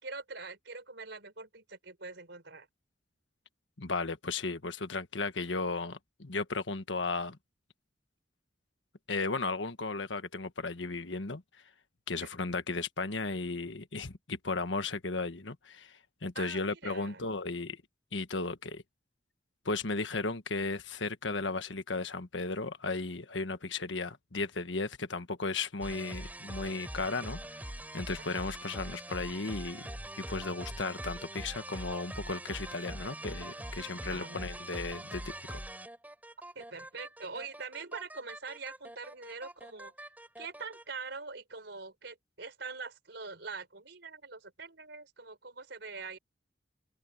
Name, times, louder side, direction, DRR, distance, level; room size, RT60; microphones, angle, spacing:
voice 1, 0.0-2.7 16.3-17.3 34.1-34.5 36.5-40.1 40.4-46.2, right 4 dB, 70° right, 5.0 m, -44 dB
voice 2, 3.8-7.4 9.1-11.4 12.1-17.8 18.1-18.8 19.6-27.4 27.9-35.6, left 3 dB, 85° left, 1.5 m, -35 dB
sound 1, 25.8-40.9, right 1 dB, 10° right, 5.0 m, -43 dB
head